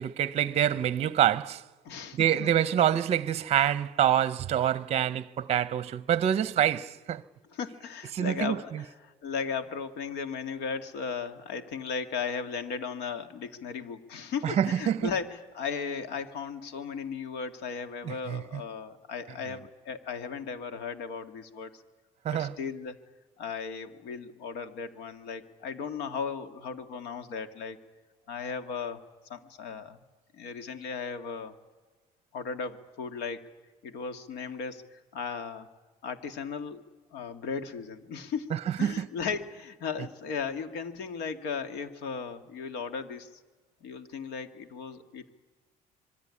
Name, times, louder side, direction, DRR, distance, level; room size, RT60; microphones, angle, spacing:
voice 1, 0.0-1.6 2.1-7.2 8.1-8.8 14.4-15.1 18.0-18.6 22.2-22.5 38.5-39.1, right 10 dB, 40° right, 0.8 m, -26 dB
voice 2, 1.8-2.5 7.5-21.8 22.3-23.0 23.4-27.8 28.3-29.0 29.3-30.0 30.3-31.6 32.3-33.5 33.8-35.7 36.0-36.8 37.1-43.4 43.8-45.3, left 5 dB, 80° left, 2.1 m, -36 dB
26.0 x 22.0 x 9.8 m
cardioid pair, 135°, 17 cm